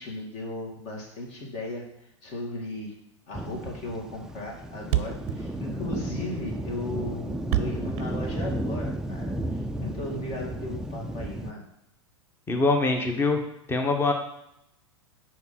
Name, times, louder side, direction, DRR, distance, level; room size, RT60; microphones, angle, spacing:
voice 1, 0.0-1.8 2.2-2.9 3.3-11.6, left 1 dB, 45° left, -1 dB, 2.3 m, -36 dB
sound 1, 3.3-11.5, right 1 dB, 5° right, 0.4 m, -33 dB
Thump thud, 3.5-3.7 4.0-4.1 4.3-4.4 4.6-4.7 4.9-8.9, right 14 dB, 45° right, 0.6 m, -30 dB
voice 2, 12.5-13.4 13.7-14.1, left 3 dB, 15° left, 4 dB, 1.1 m, -23 dB
6.0 x 4.8 x 5.7 m, 0.79 s
hypercardioid pair, 100°, 16 cm